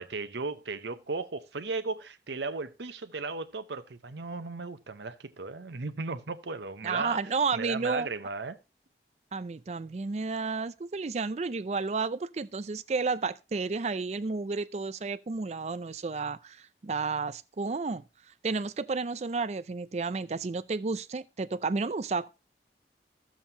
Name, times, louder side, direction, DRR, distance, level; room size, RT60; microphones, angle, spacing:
voice 1, 0.0-7.2 7.5-8.6, right 3 dB, 80° right, 0.8 m, -36 dB
voice 2, 6.8-8.1 9.3-18.0 18.4-22.3, right 4 dB, 40° right, 0.4 m, -31 dB
13.0 x 7.3 x 2.8 m
head